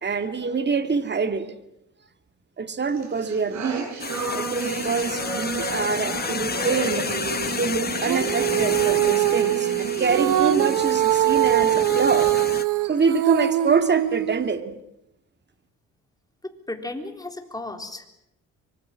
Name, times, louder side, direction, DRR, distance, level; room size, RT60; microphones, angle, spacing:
voice 1, 0.0-1.5 2.6-3.9 4.3-7.1 7.6-12.4 12.8-14.7, right 5 dB, 35° right, 2.2 m, -25 dB
sound 1, 2.9-10.8, right 4 dB, 65° right, 7.0 m, -33 dB
sound 2, 4.0-12.6, left 5 dB, 30° left, 1.3 m, -31 dB
Female singing, 8.0-14.6, right 13 dB, 85° right, 1.1 m, -22 dB
voice 2, 16.4-18.1, left 2 dB, 10° left, 3.8 m, -34 dB
25.0 x 24.0 x 7.5 m
cardioid pair, 90°, 30 cm